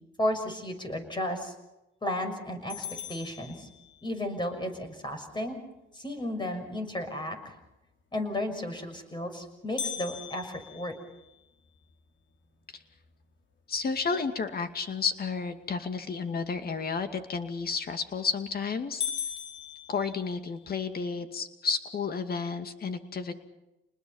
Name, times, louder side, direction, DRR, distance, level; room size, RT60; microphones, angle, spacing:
voice 1, 0.2-1.5 2.0-3.7 4.0-5.6 5.9-7.5 8.1-10.9, left 1 dB, 25° left, 6 dB, 6.2 m, -33 dB
sound 1, 2.7-4.3 9.8-11.9 12.4-12.5 13.0-13.1 13.8-14.1 17.7-18.1 18.5-18.6 19.0-20.7, left 8 dB, 70° left, 3.6 m, -38 dB
voice 2, 13.7-19.0 19.9-23.3, left 5 dB, 50° left, 8 dB, 2.4 m, -31 dB
29.0 x 20.5 x 5.7 m, 0.97 s
cardioid pair, 90°, 20 cm